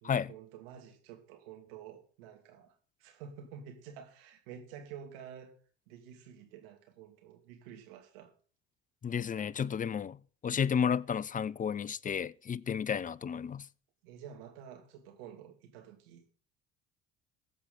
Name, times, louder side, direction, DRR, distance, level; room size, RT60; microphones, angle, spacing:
voice 1, 0.0-2.7 3.0-5.5 5.9-8.3 14.0-16.3, right 8 dB, 70° right, 2.6 m, -50 dB
voice 2, 9.0-10.2 10.4-13.7, left 7 dB, 25° left, 0.7 m, -32 dB
21.0 x 8.2 x 4.0 m
hypercardioid pair, 60°, 30 cm